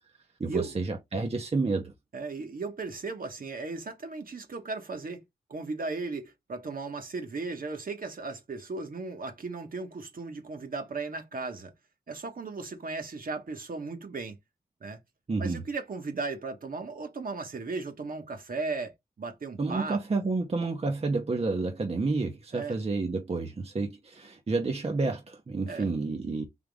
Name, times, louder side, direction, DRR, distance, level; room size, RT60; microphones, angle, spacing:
voice 1, 0.4-1.9 15.3-15.6 19.6-26.5, right 3 dB, 35° right, 0.8 m, -30 dB
voice 2, 2.1-5.2 5.5-11.7 12.1-14.4 14.8-15.0 15.4-20.0 22.5-22.8 25.7-25.9, right 3 dB, 55° right, 1.2 m, -36 dB
3.6 x 2.9 x 3.5 m
cardioid pair, 45°, 17 cm